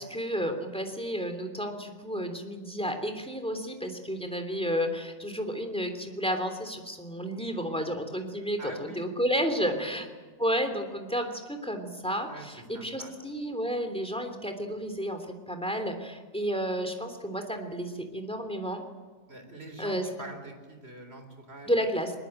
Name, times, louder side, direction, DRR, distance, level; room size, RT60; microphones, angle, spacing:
voice 1, 0.0-10.1 10.4-18.8 19.8-20.1 21.6-22.1, equal, 5° left, 6 dB, 3.1 m, -31 dB
voice 2, 8.6-9.1 9.7-10.1 12.3-12.5 12.7-13.1 19.3-21.7, right 1 dB, 40° right, 6 dB, 4.3 m, -44 dB
21.5 x 20.5 x 9.0 m, 1.4 s
omnidirectional pair, 1.7 m